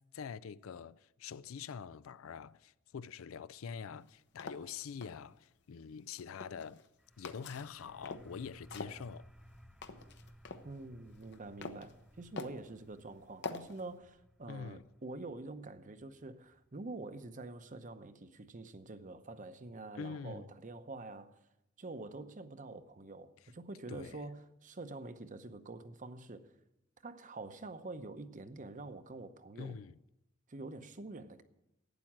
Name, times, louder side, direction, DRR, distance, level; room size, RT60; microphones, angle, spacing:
voice 1, 0.0-6.8 7.2-9.3 14.5-14.8 20.0-20.5 23.9-24.3 29.6-30.0, left 6 dB, 80° left, 0.4 m, -45 dB
sound 1, 4.0-5.1 6.0-6.9 7.2-8.4 8.7-10.7 11.1-11.9 12.4-12.7 13.4-13.8, left 4 dB, 60° left, 0.9 m, -45 dB
sound 2, 7.0-18.5, equal, ahead, 0.6 m, -60 dB
voice 2, 10.6-21.4 21.8-26.5 27.0-29.8 30.5-31.4, right 2 dB, 40° right, 0.8 m, -46 dB
12.0 x 9.1 x 7.3 m
head